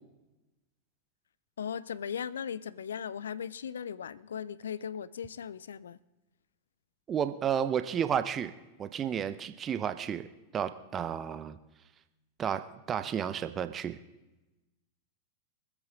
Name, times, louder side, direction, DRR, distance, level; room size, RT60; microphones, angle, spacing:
voice 1, 1.6-6.0, left 8 dB, 65° left, 0.4 m, -38 dB
voice 2, 7.1-8.5 8.8-10.3 10.5-11.6 12.4-14.0, right 8 dB, 25° right, 0.6 m, -32 dB
24.0 x 8.3 x 3.8 m
figure-of-eight pair, 90°, 0 cm